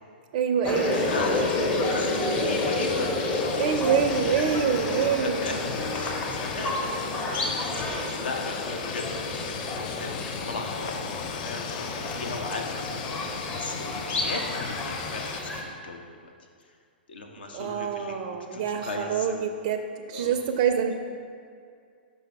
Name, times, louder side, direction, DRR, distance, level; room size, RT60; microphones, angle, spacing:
voice 1, 0.3-1.0 3.6-5.5 17.5-20.9, right 7 dB, 40° right, 6 dB, 0.4 m, -26 dB
sound 1, 0.6-15.6, left 2 dB, 25° left, 0.8 m, -30 dB
sound 2, 0.9-15.4, left 7 dB, 45° left, 0.4 m, -37 dB
voice 2, 1.0-1.5 1.9-3.1 3.4-3.8 4.8-5.5 5.9-7.0 7.8-9.1 9.5-10.1 10.5-14.4 14.7-16.3 17.1-18.2 18.5-19.3 20.1-20.3, left 3 dB, 65° left, 3 dB, 0.8 m, -37 dB
5.5 x 5.3 x 3.6 m, 2.2 s
figure-of-eight pair, 110°, 6 cm